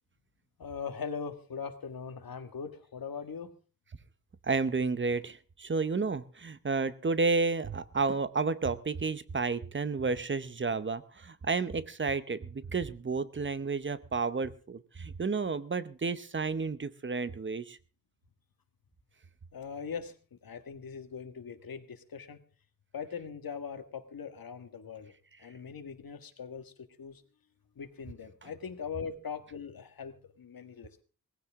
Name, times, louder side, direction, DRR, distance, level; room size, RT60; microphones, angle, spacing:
voice 1, 0.6-3.5 19.5-22.4 22.9-27.2 27.8-31.0, left 6 dB, 85° left, 9 dB, 1.8 m, -41 dB
voice 2, 4.4-17.8, right 4 dB, 35° right, 14 dB, 0.8 m, -31 dB
19.0 x 15.5 x 3.6 m, 0.38 s
wide cardioid pair, 180°, 34 cm